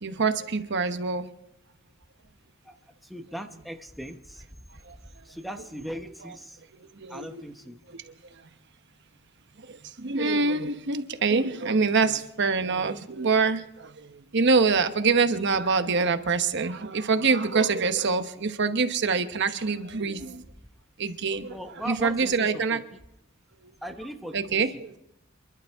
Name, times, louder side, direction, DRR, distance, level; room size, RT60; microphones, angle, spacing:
voice 1, 0.0-1.3 4.8-5.0 6.9-7.4 7.9-8.4 9.6-20.4 21.0-22.8 23.6-23.7 24.3-24.9, right 4 dB, 60° right, 1.0 m, -25 dB
voice 2, 2.6-4.6 5.0-6.6 7.1-7.8 21.5-23.0 23.8-24.6, equal, ahead, 0.9 m, -39 dB
28.0 x 11.5 x 3.6 m
head